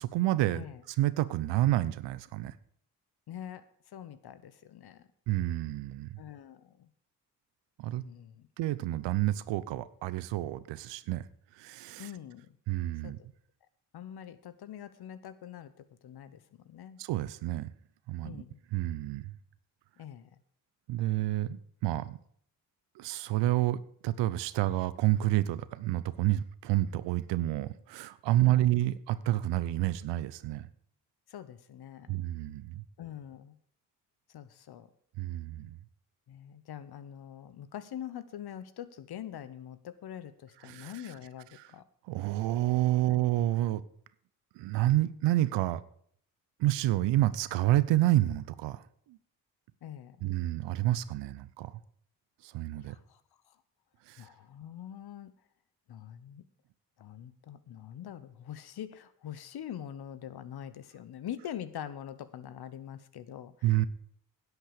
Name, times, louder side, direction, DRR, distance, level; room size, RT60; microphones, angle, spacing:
voice 1, 0.0-2.5 5.3-6.2 7.8-8.0 8.6-11.2 11.5-12.1 12.7-13.2 17.0-17.7 18.1-18.4 18.7-19.3 20.9-22.2 23.0-30.7 32.1-32.8 35.2-35.8 40.6-41.0 41.6-41.7 42.1-43.8 44.5-45.8 46.6-49.2 50.2-51.8 52.4-53.0 54.1-54.3 63.6-63.9, right 15 dB, 75° right, 17 dB, 0.8 m, -29 dB
voice 2, 3.3-5.0 6.2-6.9 8.0-8.5 12.0-12.6 13.0-13.2 13.9-17.0 18.2-18.6 20.0-20.4 28.4-28.7 31.3-32.1 33.0-33.6 34.3-34.9 36.3-41.8 43.1-43.3 49.8-50.2 52.8-53.2 53.5-53.6 54.2-55.3 55.9-56.4 57.0-63.9, left 10 dB, 60° left, 14 dB, 1.1 m, -44 dB
11.0 x 8.1 x 6.7 m, 0.62 s
hypercardioid pair, 50°, 43 cm